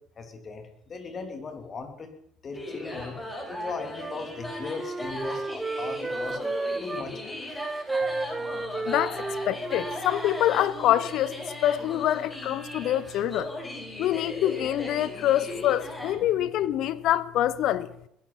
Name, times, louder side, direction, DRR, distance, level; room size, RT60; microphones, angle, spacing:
voice 1, 0.2-2.1 2.4-3.2 3.5-6.4 6.8-7.5, left 4 dB, 40° left, 3.3 m, -38 dB
sound 1, 2.5-16.1, left 1 dB, 20° left, 7.5 m, -38 dB
Wind instrument woodwind instrument, 3.9-7.1 7.5-11.0, right 3 dB, 20° right, 0.9 m, -33 dB
voice 2, 8.9-13.5 14.0-17.9, left 12 dB, 60° left, 0.8 m, -26 dB
21.5 x 11.5 x 5.8 m
hypercardioid pair, 60°, 0 cm